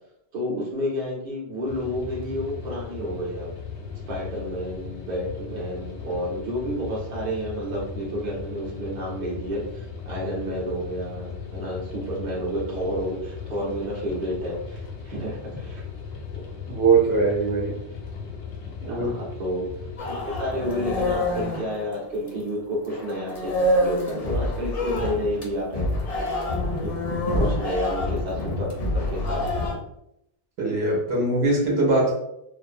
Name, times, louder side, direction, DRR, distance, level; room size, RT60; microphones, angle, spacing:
voice 1, 0.3-3.5 4.1-15.8 16.3-16.4 18.9-19.7 20.1-25.9 26.8-26.9 27.4-29.4, equal, 45° right, -4 dB, 0.8 m, -30 dB
sound 1, 1.7-21.5, left 5 dB, 90° left, 0.9 m, -37 dB
voice 2, 16.7-17.8 18.8-19.1 27.3-27.5 30.6-32.1, right 3 dB, 70° right, -4 dB, 1.0 m, -21 dB
sound 2, 20.0-22.5 22.9-29.7, left 1 dB, 50° left, 0.5 m, -27 dB
2.4 x 2.0 x 2.5 m, 0.79 s
omnidirectional pair, 1.1 m